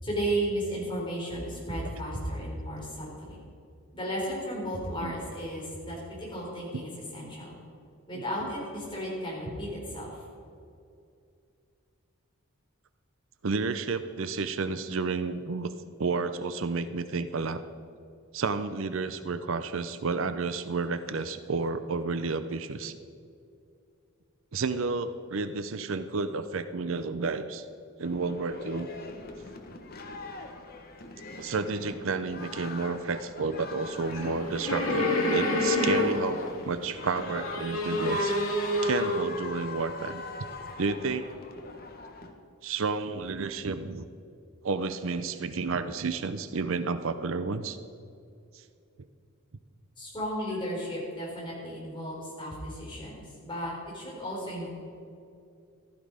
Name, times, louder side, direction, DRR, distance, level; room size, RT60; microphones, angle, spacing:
voice 1, 0.0-3.4 3.9-7.5 8.1-10.1 50.0-54.7, equal, 20° left, -4 dB, 4.4 m, -34 dB
voice 2, 13.4-15.7 16.0-17.6 18.3-22.9 24.5-27.6 28.0-28.9 31.4-38.4 38.8-40.2 40.8-41.3 42.6-44.0 44.6-47.8, right 4 dB, 65° right, 11 dB, 0.6 m, -31 dB
sound 1, 28.0-42.3, left 3 dB, 45° left, 1.2 m, -43 dB
sound 2, 34.0-36.5 37.0-39.3, left 1 dB, 70° left, 2.2 m, -28 dB
15.0 x 12.5 x 5.0 m, 2.5 s
head